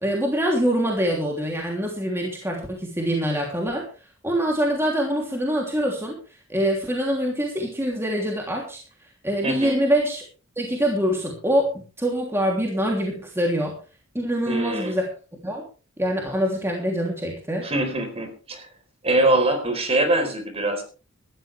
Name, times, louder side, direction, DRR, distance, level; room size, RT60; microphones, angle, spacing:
voice 1, 0.0-3.9 4.2-6.2 6.5-8.8 9.2-10.2 10.6-13.8 14.1-15.0 15.4-15.6 16.0-17.7, equal, 10° right, -1 dB, 3.1 m, -24 dB
voice 2, 9.4-9.8 14.5-15.0 17.6-18.7 19.0-20.8, right 2 dB, 30° right, 5 dB, 4.2 m, -23 dB
18.0 x 13.5 x 3.4 m, 0.34 s
head